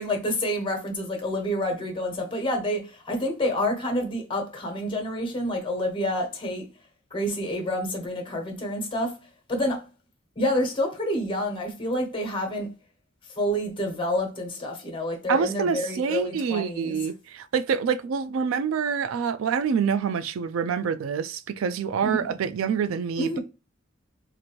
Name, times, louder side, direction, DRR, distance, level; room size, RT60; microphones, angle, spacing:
voice 1, 0.0-6.7 7.1-9.2 9.5-9.9 10.4-12.7 13.4-17.0 22.0-22.3 23.2-23.4, left 1 dB, 25° left, 1.2 m, -28 dB
voice 2, 15.3-23.4, right 6 dB, 75° right, 0.3 m, -26 dB
4.2 x 2.6 x 2.9 m
head